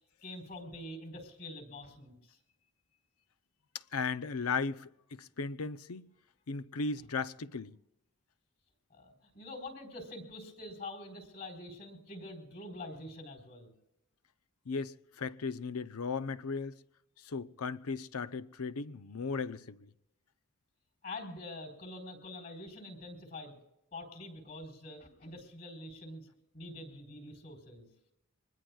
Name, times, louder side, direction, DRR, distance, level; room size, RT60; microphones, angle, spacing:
voice 1, 0.2-2.4 8.9-13.7 21.0-23.6 23.9-26.3 26.5-27.9, left 2 dB, 45° left, 4.3 m, -45 dB
voice 2, 3.9-6.0 6.5-7.8 14.7-16.7 17.2-19.9, left 4 dB, 85° left, 0.7 m, -36 dB
24.5 x 20.5 x 2.4 m
head